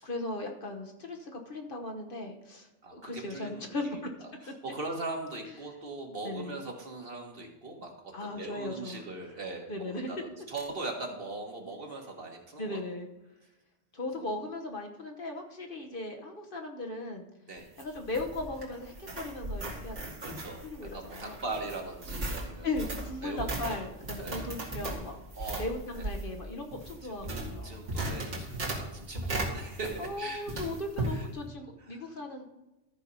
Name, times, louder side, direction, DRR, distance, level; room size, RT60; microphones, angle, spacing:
voice 1, 0.0-4.0 6.2-6.6 8.1-9.0 9.7-10.1 12.6-13.1 13.9-17.3 17.8-20.3 20.6-21.4 22.6-25.2 25.6-27.8 30.0-32.4, left 2 dB, 50° left, 3 dB, 1.2 m, -37 dB
voice 2, 2.8-4.0 4.4-12.8 14.2-14.3 17.5-17.7 20.2-20.6 20.9-22.9 23.2-23.7 24.2-24.5 25.4-25.7 25.9-26.1 27.0-30.4 31.1-31.3 31.9-32.1, right 3 dB, 55° right, 2 dB, 1.7 m, -40 dB
sound 1, 17.6-30.2 30.5-31.2, right 2 dB, 85° right, 2.4 m, -37 dB
13.5 x 4.5 x 5.4 m, 0.97 s
omnidirectional pair, 1.2 m